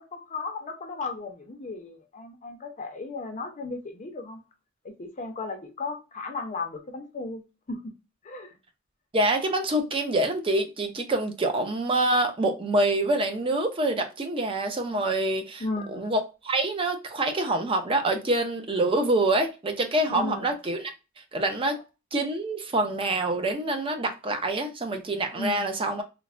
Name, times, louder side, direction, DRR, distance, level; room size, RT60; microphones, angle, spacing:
voice 1, 0.1-4.4 5.0-7.4 7.7-7.9 8.2-8.6 15.6-16.1 20.1-20.5 25.3-25.6, left 3 dB, 35° left, 0.5 m, -35 dB
voice 2, 9.1-20.9 21.3-21.8 22.1-26.0, right 2 dB, 25° right, 0.5 m, -26 dB
3.2 x 2.1 x 2.4 m
head